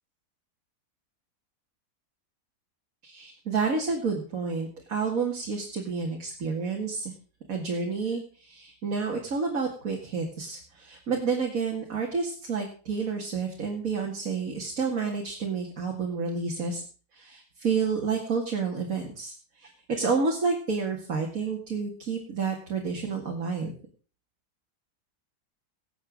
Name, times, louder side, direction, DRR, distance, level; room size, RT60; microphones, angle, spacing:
voice 1, 3.0-7.1 7.5-16.8 17.1-19.3 19.6-23.7, right 5 dB, 55° right, 0 dB, 2.7 m, -30 dB
18.0 x 8.1 x 5.2 m, 0.39 s
omnidirectional pair, 1.7 m